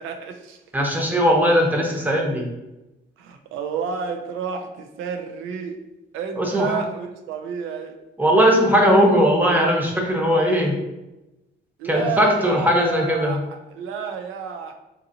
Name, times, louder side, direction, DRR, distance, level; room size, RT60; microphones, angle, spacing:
voice 1, 0.0-0.6 1.9-2.2 3.2-5.8 6.1-8.0 11.8-14.7, right 6 dB, 85° right, 5 dB, 0.4 m, -30 dB
voice 2, 0.7-2.5 6.4-6.8 8.2-10.8 11.8-13.4, equal, 10° right, 0 dB, 0.8 m, -19 dB
3.8 x 2.7 x 2.6 m, 1.0 s
cardioid pair, 90°, 20 cm